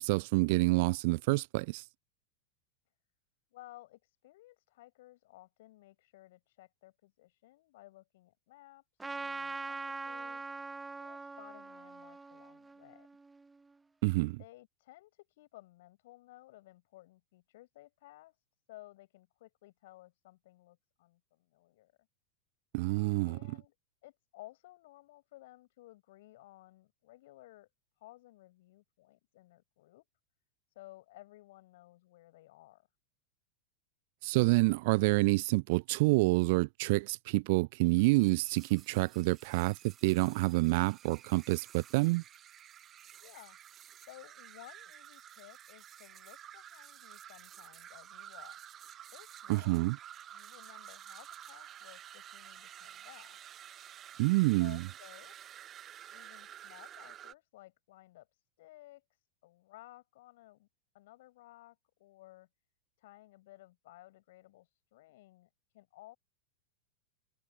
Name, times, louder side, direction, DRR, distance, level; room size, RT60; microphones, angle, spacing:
voice 1, 0.0-1.8 14.0-14.4 22.7-23.6 34.2-42.2 49.5-50.0 54.2-54.8, right 25 dB, 50° right, 0.6 m, -28 dB
voice 2, 3.5-10.4 10.9-13.1 14.4-18.4 18.7-21.9 23.2-23.7 24.0-27.7 28.0-30.1 30.7-32.9 43.2-43.6 44.0-48.6 49.1-49.9 50.3-53.4 54.6-55.4 56.1-60.7 60.9-62.5 63.0-66.2, left 17 dB, 55° left, 7.6 m, -56 dB
Trumpet, 9.0-13.7, right 3 dB, 10° right, 1.4 m, -43 dB
sound 1, 37.9-57.3, right 10 dB, 30° right, 2.0 m, -51 dB
figure-of-eight pair, 90°, 0 cm